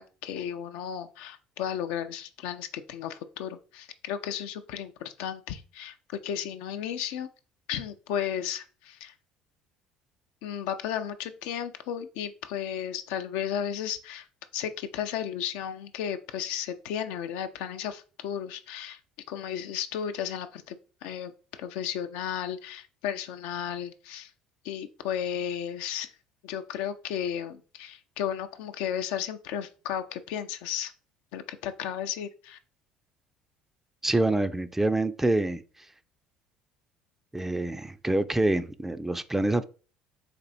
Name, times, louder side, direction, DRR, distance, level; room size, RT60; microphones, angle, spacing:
voice 1, 0.0-7.3 7.7-9.2 10.4-14.3 14.5-19.0 19.3-20.8 21.0-21.3 21.6-24.3 24.6-26.1 26.4-30.9 31.3-32.6, left 9 dB, 70° left, 0.5 m, -34 dB
voice 2, 34.0-35.6 37.3-39.6, right 2 dB, 10° right, 0.4 m, -26 dB
4.3 x 2.6 x 4.0 m
hypercardioid pair, 65°, 3 cm